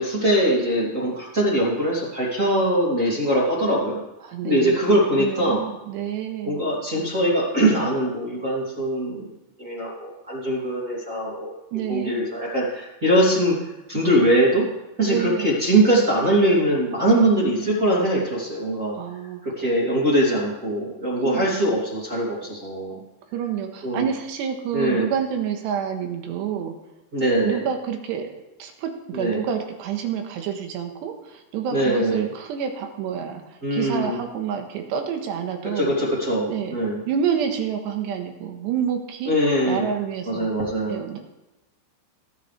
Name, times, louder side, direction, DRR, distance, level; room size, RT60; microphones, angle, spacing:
voice 1, 0.0-4.0 4.4-5.6 6.5-9.3 9.6-13.6 13.9-14.6 15.0-19.0 19.4-23.0 23.8-24.1 24.7-25.1 27.1-27.6 29.1-29.4 31.7-32.3 33.6-34.2 35.7-37.0 39.3-39.9 40.3-41.0, right 1 dB, 25° right, -5 dB, 2.0 m, -22 dB
voice 2, 4.2-6.6 11.7-12.2 15.1-15.5 17.3-17.8 18.9-19.4 21.3-21.5 23.3-26.7 27.2-35.9 36.5-36.8 37.1-39.4 39.7-40.5 40.9-41.2, right 8 dB, 75° right, 4 dB, 3.1 m, -28 dB
19.5 x 10.0 x 3.3 m, 0.98 s
omnidirectional pair, 5.4 m